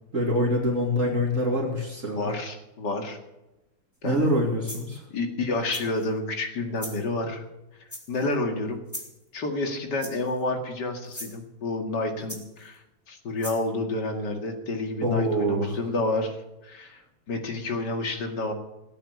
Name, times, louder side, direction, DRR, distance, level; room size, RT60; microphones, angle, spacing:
voice 1, 0.1-2.3 4.0-5.0 15.0-15.8, equal, 40° right, -1 dB, 2.8 m, -25 dB
voice 2, 2.2-3.2 4.0-4.3 5.1-7.4 8.1-8.8 9.3-16.4 16.6-17.0 17.3-18.5, left 2 dB, 60° left, 4 dB, 2.7 m, -29 dB
sound 1, 4.2-4.3 4.7-5.0 5.7-6.1 6.8-7.0 7.9-8.3 8.9-9.2 10.0-10.4 11.0-11.3 12.3-12.7 13.4-13.7, equal, 10° left, 3.1 m, -39 dB
17.5 x 8.8 x 8.5 m, 0.96 s
omnidirectional pair, 2.1 m